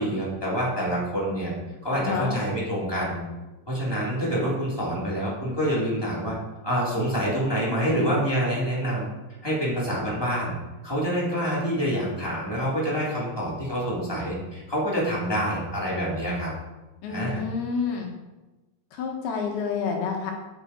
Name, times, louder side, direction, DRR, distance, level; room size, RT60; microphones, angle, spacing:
voice 1, 0.0-1.5 1.8-3.2 3.7-6.3 6.6-9.1 9.4-10.5 10.8-16.5 17.1-17.4, equal, 5° left, -7 dB, 2.9 m, -26 dB
voice 2, 1.9-2.3 17.0-18.1 18.9-20.3, left 5 dB, 65° left, 1 dB, 2.9 m, -29 dB
10.5 x 8.7 x 4.6 m, 1.1 s
omnidirectional pair, 5.3 m